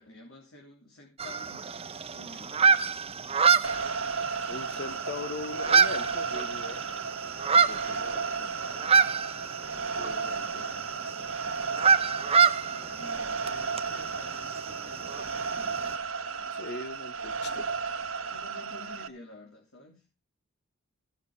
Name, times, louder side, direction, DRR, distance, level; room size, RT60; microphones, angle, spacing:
voice 1, 0.0-1.7 2.1-2.6 10.1-10.9 12.7-15.9 16.4-16.7 17.4-17.7 18.3-20.0, left 2 dB, 75° left, 0 dB, 3.4 m, -51 dB
sound 1, 1.2-15.9, right 6 dB, 30° right, 0.8 m, -27 dB
sound 2, 3.6-19.1, right 5 dB, 85° right, 1.4 m, -34 dB
voice 2, 4.5-6.8 7.5-8.5 10.0-10.7 16.5-17.8, left 3 dB, 55° left, 12 dB, 1.2 m, -40 dB
16.5 x 6.7 x 5.6 m, 0.30 s
head